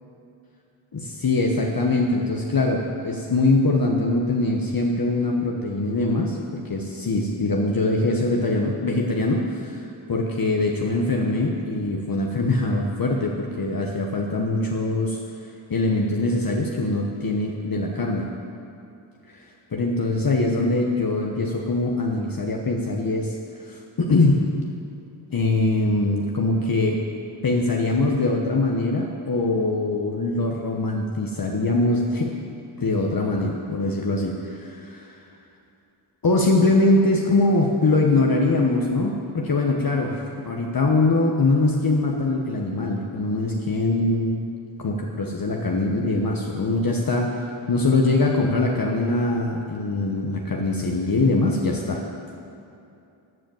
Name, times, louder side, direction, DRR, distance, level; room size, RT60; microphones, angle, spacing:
voice 1, 0.9-15.2 15.7-18.3 19.3-19.4 19.7-23.4 23.6-24.4 25.3-27.0 27.4-32.3 32.8-35.2 36.2-44.4 44.8-52.0, left 2 dB, 45° left, 0 dB, 1.1 m, -22 dB
14.0 x 5.0 x 7.8 m, 2.6 s
cardioid pair, 50°, 49 cm